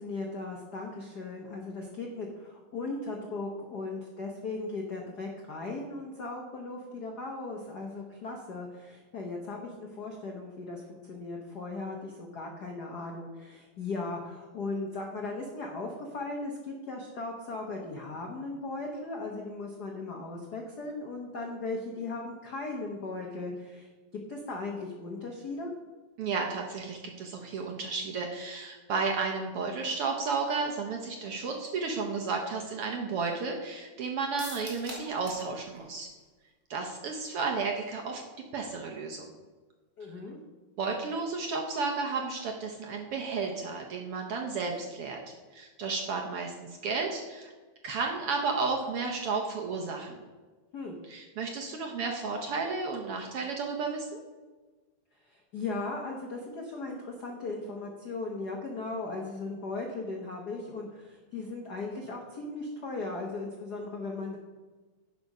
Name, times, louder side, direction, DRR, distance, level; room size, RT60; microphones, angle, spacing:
voice 1, 0.0-25.7 40.0-40.4 50.7-50.9 55.2-64.4, left 3 dB, 90° left, 0 dB, 0.8 m, -37 dB
voice 2, 26.2-36.1 36.7-38.2 38.5-39.3 40.8-47.5 47.8-50.2 51.1-54.2, right 4 dB, 65° right, 1 dB, 1.4 m, -33 dB
sound 1, 34.4-35.5 35.8-35.9 36.2-36.3, right 2 dB, 45° right, 2.6 m, -42 dB
11.0 x 5.3 x 5.4 m, 1.3 s
omnidirectional pair, 3.5 m